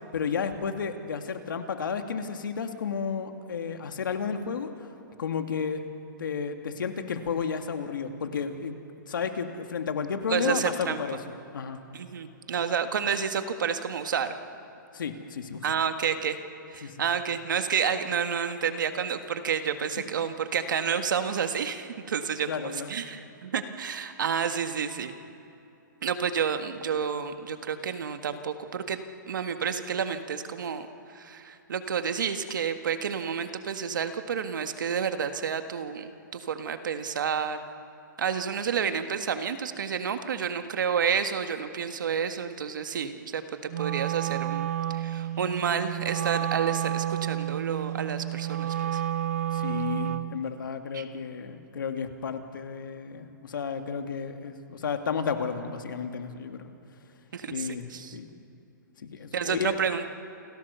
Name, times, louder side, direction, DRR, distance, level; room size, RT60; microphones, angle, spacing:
voice 1, 0.1-4.9 5.2-5.8 6.2-8.7 9.1-11.2 11.5-11.8 14.9-15.6 16.8-17.0 22.5-22.9 49.5-56.7 57.5-58.3 59.0-59.7, left 6 dB, 75° left, 6 dB, 2.1 m, -32 dB
voice 2, 10.3-11.0 11.9-14.3 15.6-16.4 16.7-25.1 26.0-29.0 29.3-30.9 31.1-37.6 38.2-44.7 44.9-49.0 50.9-51.0 57.3-58.2 59.3-60.0, right 7 dB, 70° right, 8 dB, 1.6 m, -30 dB
Wind instrument woodwind instrument, 43.7-50.4, right 12 dB, 45° right, 0.6 m, -30 dB
28.5 x 16.0 x 6.9 m, 2.8 s
hypercardioid pair, 170°, 11 cm